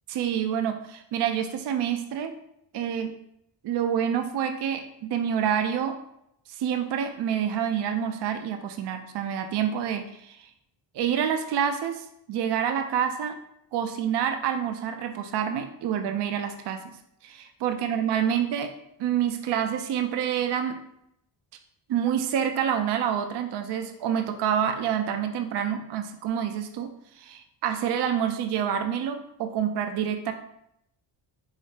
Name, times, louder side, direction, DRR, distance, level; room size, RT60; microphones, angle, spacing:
voice 1, 0.1-2.3 2.7-3.2 3.6-6.0 6.5-10.5 10.9-13.4 13.7-17.0 17.2-18.7 19.0-20.8 21.9-30.3, right 8 dB, 55° right, 7 dB, 0.5 m, -27 dB
4.9 x 3.1 x 2.8 m, 0.76 s
cardioid pair, 105°, 49 cm